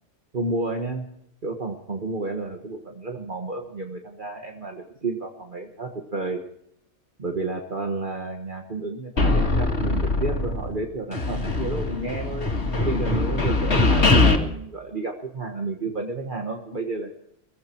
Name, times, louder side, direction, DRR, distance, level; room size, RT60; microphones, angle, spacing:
voice 1, 0.3-1.1 1.4-6.4 7.2-12.5 12.8-17.1, right 3 dB, 45° right, 2 dB, 1.6 m, -31 dB
sound 1, 9.2-10.8 11.1-14.4, left 2 dB, 65° left, 2.4 m, -22 dB
19.5 x 15.5 x 4.5 m, 0.74 s
omnidirectional pair, 1.2 m